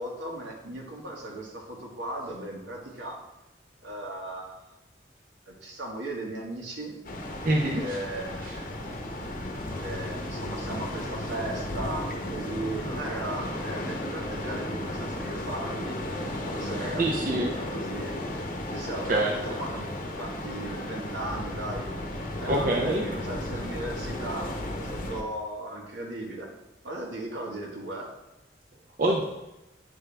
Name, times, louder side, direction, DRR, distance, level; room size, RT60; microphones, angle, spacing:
voice 1, 0.0-3.2 3.8-4.6 5.5-6.9 7.8-8.9 9.8-12.0 12.3-16.0 16.5-18.2 18.7-21.9 22.4-26.5 26.8-28.1, right 1 dB, 85° right, -1 dB, 1.4 m, -37 dB
sound 1, 7.0-25.2, left 1 dB, 45° left, 0.8 m, -34 dB
voice 2, 7.4-8.0 8.4-8.6 17.0-17.5 19.1-19.3 22.5-23.0 29.0-29.2, right 1 dB, 50° right, -1 dB, 0.6 m, -25 dB
9.0 x 3.7 x 3.3 m, 0.95 s
head